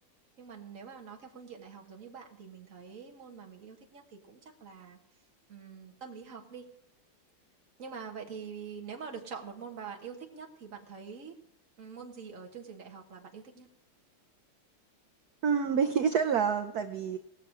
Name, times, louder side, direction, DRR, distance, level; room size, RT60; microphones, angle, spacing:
voice 1, 0.4-5.0 5.5-6.6 7.8-11.3 11.8-13.7, right 6 dB, 40° right, 1 dB, 1.6 m, -45 dB
voice 2, 15.4-17.2, right 6 dB, 75° right, 7 dB, 0.8 m, -27 dB
19.5 x 7.0 x 4.7 m, 0.78 s
omnidirectional pair, 2.4 m